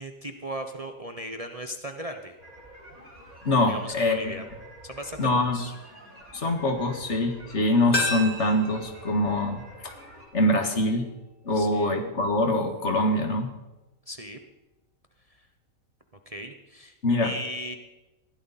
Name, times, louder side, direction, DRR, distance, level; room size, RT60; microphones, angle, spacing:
voice 1, 0.0-2.4 3.7-4.4 4.8-5.2 5.5-5.7 11.5-11.9 14.1-14.4 15.3-15.5 16.3-17.8, equal, 25° right, 5 dB, 1.0 m, -37 dB
sound 1, 2.4-10.3, right 1 dB, 75° right, 7.4 m, -48 dB
voice 2, 3.5-4.3 5.2-5.6 6.3-9.9 10.3-11.0 11.4-13.5 17.0-17.3, left 1 dB, 50° left, 5 dB, 2.0 m, -24 dB
sound 2, 7.9-10.7 11.0-11.1, left 1 dB, 35° left, 3.9 m, -33 dB
21.0 x 15.5 x 4.2 m, 1.0 s
omnidirectional pair, 1.5 m